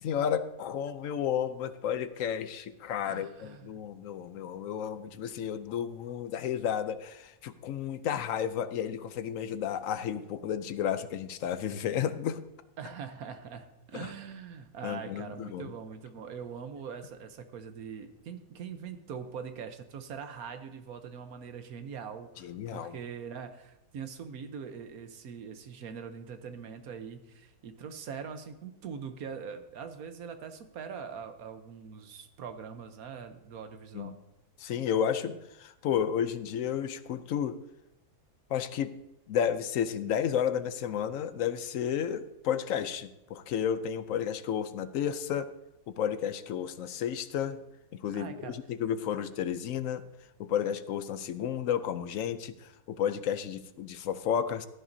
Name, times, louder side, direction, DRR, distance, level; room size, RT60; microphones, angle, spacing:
voice 1, 0.0-12.4 13.9-14.1 14.8-15.7 22.4-23.0 33.9-34.1 34.6-37.5 38.5-38.9 39.3-45.5 45.9-47.6 47.9-50.0 50.4-54.7, left 9 dB, 70° left, 12 dB, 0.9 m, -32 dB
voice 2, 3.0-3.8 12.8-34.1 48.1-48.6, right 6 dB, 70° right, 8 dB, 1.3 m, -42 dB
15.5 x 10.0 x 2.7 m, 0.89 s
omnidirectional pair, 1.7 m